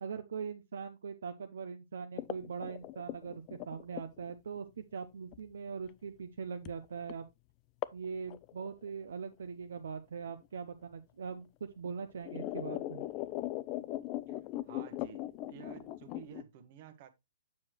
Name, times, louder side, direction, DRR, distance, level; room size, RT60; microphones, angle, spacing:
voice 1, 0.0-7.3 7.9-11.5 11.8-13.0, right 6 dB, 65° right, 0.6 m, -41 dB
sound 1, 2.2-4.6 5.3-5.4 6.7-6.8 7.1-7.2 7.8-8.1 8.3-9.1 10.3-10.4 11.3-11.4 11.9-16.4, left 15 dB, 35° left, 0.4 m, -39 dB
voice 2, 14.7-17.1, right 9 dB, 45° right, 1.1 m, -52 dB
7.2 x 6.3 x 3.1 m
figure-of-eight pair, 120°, 0 cm